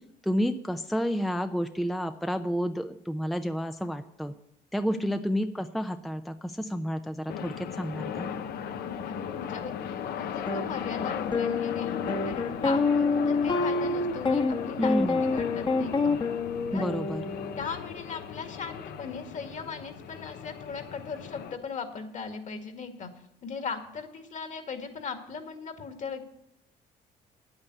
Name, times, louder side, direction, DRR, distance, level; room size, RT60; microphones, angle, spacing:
voice 1, 0.2-4.3 4.7-8.3 14.8-15.2 16.7-17.3, equal, ahead, 9 dB, 0.5 m, -30 dB
voice 2, 4.9-5.3 9.1-16.2 16.7-16.9 17.6-23.1 23.4-26.3, left 5 dB, 45° left, 7 dB, 2.0 m, -38 dB
sound 1, 7.3-21.6, left 8 dB, 70° left, 1.0 m, -37 dB
sound 2, 10.5-10.6 11.3-17.6, left 3 dB, 30° left, 1.2 m, -27 dB
9.4 x 8.9 x 8.2 m, 0.81 s
cardioid pair, 110°, 17 cm